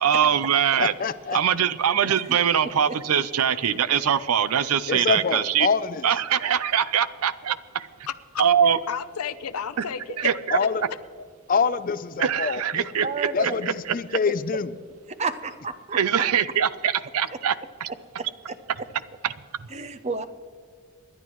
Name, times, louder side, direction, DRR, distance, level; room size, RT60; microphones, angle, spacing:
voice 1, 0.0-0.9 1.3-5.7 6.0-7.9 8.4-8.8 10.2-10.6 12.2-13.3 13.9-14.2 15.9-17.5 17.8-17.9, right 8 dB, 80° right, 16 dB, 0.6 m, -22 dB
voice 2, 0.8-1.4 4.9-6.0 10.5-10.8 11.5-12.8 13.3-14.7, left 5 dB, 40° left, 14 dB, 0.5 m, -25 dB
voice 3, 8.1-10.3 10.6-10.7, left 7 dB, 85° left, 12 dB, 0.7 m, -32 dB
voice 4, 13.0-13.6 15.2-16.2 18.2-18.3 19.7-20.3, right 4 dB, 30° right, 12 dB, 0.6 m, -31 dB
27.5 x 11.0 x 3.1 m, 2.1 s
head